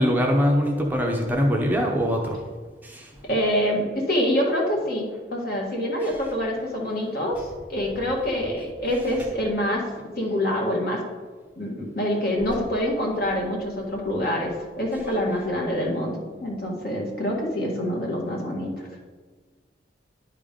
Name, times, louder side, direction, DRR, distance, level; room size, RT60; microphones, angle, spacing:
voice 1, 0.0-2.4 2.8-3.1, equal, 10° right, 0 dB, 0.7 m, -22 dB
voice 2, 3.2-9.8 10.2-11.0 11.6-18.9, equal, 55° left, -1 dB, 1.7 m, -26 dB
10.5 x 3.8 x 5.1 m, 1.4 s
head